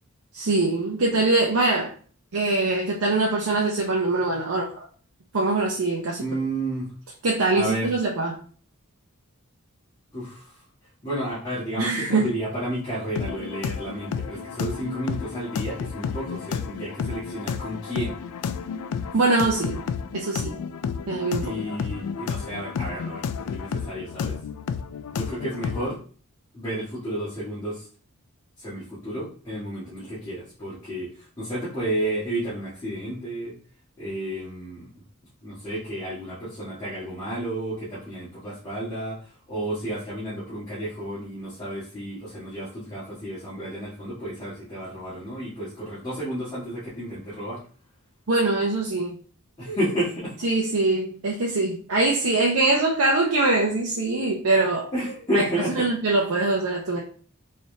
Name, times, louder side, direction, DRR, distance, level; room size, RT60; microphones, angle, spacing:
voice 1, 0.3-1.9 2.3-4.9 5.3-6.2 7.2-8.4 11.8-12.3 19.1-19.8 20.1-20.6 21.1-21.5 48.3-49.2 50.4-54.9 55.3-55.5 55.8-57.0, right 2 dB, 75° right, -1 dB, 0.6 m, -23 dB
voice 2, 6.2-6.9 7.5-7.9 10.1-10.5 11.0-18.2 21.4-24.4 25.1-26.0 26.5-27.8 28.6-33.5 34.0-34.9 35.4-39.2 39.5-47.6 49.6-50.4 54.9-55.9, right 1 dB, 20° left, -12 dB, 1.6 m, -31 dB
sound 1, 13.2-26.0, left 6 dB, 90° left, 0.3 m, -31 dB
4.3 x 3.3 x 2.7 m, 0.42 s
head